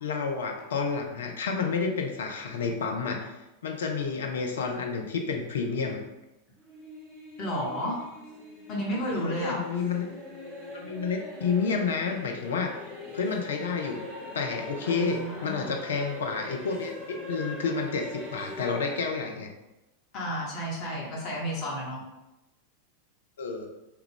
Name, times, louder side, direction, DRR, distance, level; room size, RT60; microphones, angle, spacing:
voice 1, 0.0-3.3 3.6-6.0 9.1-10.1 10.7-12.8 13.1-14.1 14.3-19.5 23.4-23.7, left 5 dB, 65° left, 3 dB, 0.5 m, -30 dB
sound 1, 6.6-19.0, left 1 dB, 20° right, 1.0 m, -42 dB
voice 2, 7.4-8.0 8.7-9.6 14.8-15.7 20.1-22.0, equal, 35° left, -5 dB, 1.1 m, -32 dB
3.3 x 2.3 x 3.4 m, 0.98 s
figure-of-eight pair, 90°, 0 cm